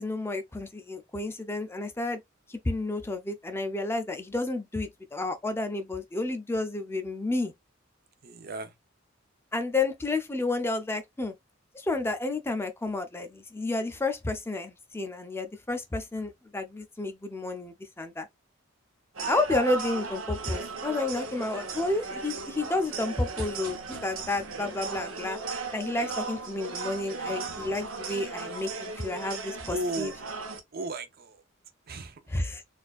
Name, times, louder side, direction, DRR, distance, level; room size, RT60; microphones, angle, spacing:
voice 1, 0.0-2.2 2.5-7.5 9.5-11.3 11.7-18.3 19.3-25.4 25.7-30.1 32.3-32.6, left 2 dB, 10° left, 0.4 m, -31 dB
voice 2, 8.2-8.7 28.4-28.5 29.7-30.2 30.7-31.4 31.9-32.4, right 2 dB, 50° right, 0.6 m, -35 dB
sound 1, 19.1-30.6, right 4 dB, 85° right, 0.8 m, -36 dB
4.2 x 2.4 x 2.4 m
head